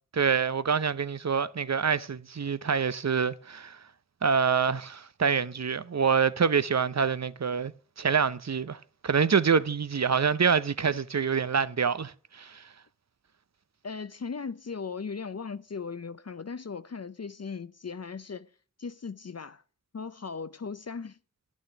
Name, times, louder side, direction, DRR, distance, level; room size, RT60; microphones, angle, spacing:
voice 1, 0.1-3.8 4.2-7.7 8.0-12.6, right 6 dB, 55° right, 0.7 m, -26 dB
voice 2, 13.8-18.5 18.8-19.6 19.9-21.2, left 5 dB, 50° left, 0.6 m, -38 dB
11.5 x 6.3 x 7.8 m
wide cardioid pair, 45°, 32 cm